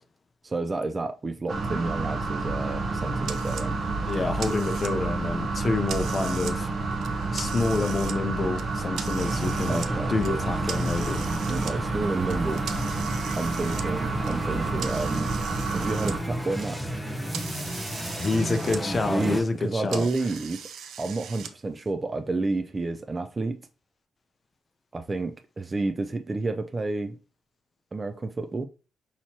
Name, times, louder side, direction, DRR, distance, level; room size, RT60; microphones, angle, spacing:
voice 1, 0.4-3.8 9.7-10.1 11.5-12.7 13.4-15.3 15.7-17.0 19.1-20.7 21.0-23.6 24.9-27.2 27.9-28.7, right 3 dB, 25° right, 0.3 m, -30 dB
sound 1, 1.5-16.2, right 3 dB, 50° right, 0.9 m, -29 dB
sound 2, 3.2-3.7 4.1-5.1 5.5-6.6 6.9-8.2 8.6-9.9 10.2-11.7 12.3-16.2 16.5-18.8 19.1-21.5, right 7 dB, 85° right, 0.5 m, -40 dB
voice 2, 4.0-6.7 7.3-9.8 10.1-11.2 18.1-20.1, left 3 dB, 35° left, 0.5 m, -28 dB
sound 3, 9.2-19.4, equal, 5° right, 0.8 m, -33 dB
5.9 x 2.9 x 2.8 m
cardioid pair, 115°, 0 cm